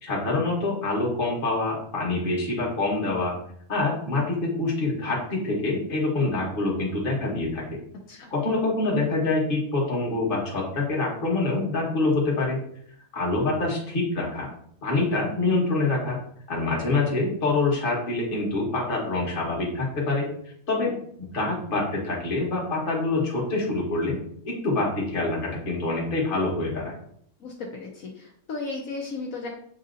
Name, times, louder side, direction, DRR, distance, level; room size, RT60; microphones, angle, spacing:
voice 1, 0.0-3.3 3.7-7.8 8.3-12.6 13.1-14.5 14.8-16.2 16.5-20.3 20.7-24.2 24.4-27.0, left 2 dB, 40° left, -3 dB, 1.3 m, -26 dB
voice 2, 27.8-29.5, left 3 dB, 75° left, -1 dB, 1.1 m, -35 dB
7.2 x 2.7 x 2.5 m, 0.67 s
omnidirectional pair, 1.5 m